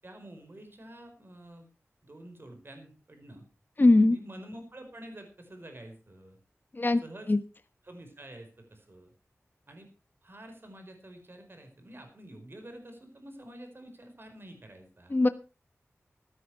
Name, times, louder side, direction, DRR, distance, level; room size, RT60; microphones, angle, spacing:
voice 1, 0.0-1.7 2.0-3.4 4.0-6.4 7.0-7.3 7.8-9.1 9.7-9.9 10.2-15.2, right 1 dB, 45° right, 6 dB, 4.8 m, -48 dB
voice 2, 3.8-4.2 6.7-7.0 7.3-7.4 15.1-15.3, left 2 dB, 40° left, 10 dB, 1.2 m, -20 dB
15.0 x 13.0 x 4.7 m, 0.33 s
wide cardioid pair, 85°, 5 cm